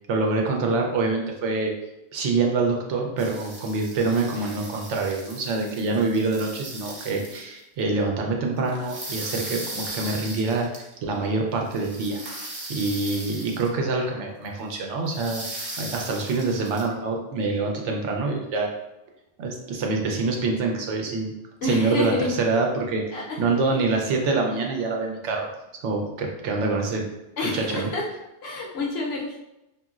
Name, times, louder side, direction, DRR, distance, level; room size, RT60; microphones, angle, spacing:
voice 1, 0.1-1.7 2.1-10.7 11.0-12.2 12.7-15.4 15.8-18.7 19.4-21.3 21.6-25.5 25.8-27.1 27.4-27.9, right 3 dB, 85° right, 1 dB, 0.9 m, -25 dB
sound 1, 3.2-7.4 8.6-10.9 11.7-13.7 14.4-14.5 15.1-16.8, right 1 dB, 30° right, 0.4 m, -38 dB
voice 2, 21.6-22.3 23.1-23.6 27.4-28.0 28.4-29.4, left 2 dB, 65° left, -2 dB, 0.9 m, -28 dB
2.9 x 2.5 x 2.4 m, 0.90 s
omnidirectional pair, 1.2 m